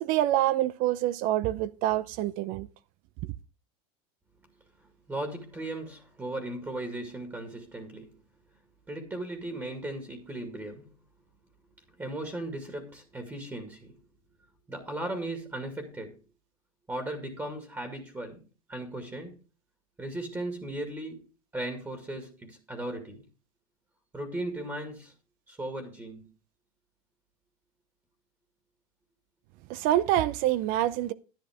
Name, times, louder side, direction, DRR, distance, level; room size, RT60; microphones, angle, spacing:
voice 1, 0.0-2.7 29.7-31.1, right 13 dB, 50° right, 0.6 m, -26 dB
voice 2, 4.8-8.2 8.9-10.9 12.0-14.0 14.7-16.2 16.9-19.4 20.0-21.3 21.5-23.3 24.1-25.1 25.5-26.3, right 1 dB, 15° right, 2.1 m, -37 dB
10.5 x 9.7 x 3.6 m
supercardioid pair, 135°, 18 cm